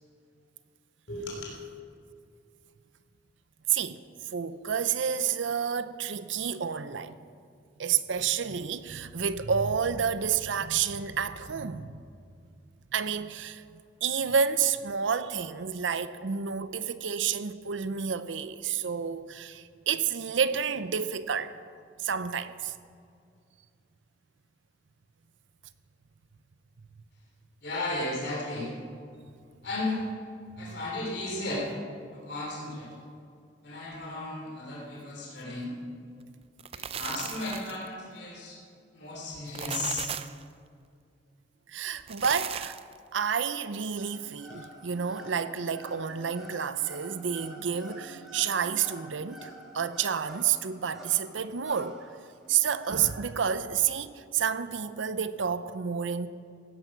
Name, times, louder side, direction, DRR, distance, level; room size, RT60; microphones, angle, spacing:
voice 1, 1.1-1.5 27.6-28.7 29.6-30.0 30.6-31.7 32.1-32.9 33.6-35.7 36.7-38.6 38.9-40.1, left 2 dB, 65° left, 3.3 m, -34 dB
voice 2, 3.7-7.2 7.8-12.0 12.9-21.5 22.0-22.7 30.6-30.8 41.7-42.8 43.1-52.0 52.5-56.3, right 7 dB, 80° right, 0.6 m, -30 dB
sound 1, 36.4-37.9 39.3-40.4 41.9-43.0, right 8 dB, 30° right, 0.4 m, -37 dB
sound 2, 44.0-53.1, equal, ahead, 3.0 m, -48 dB
16.0 x 10.5 x 6.0 m
head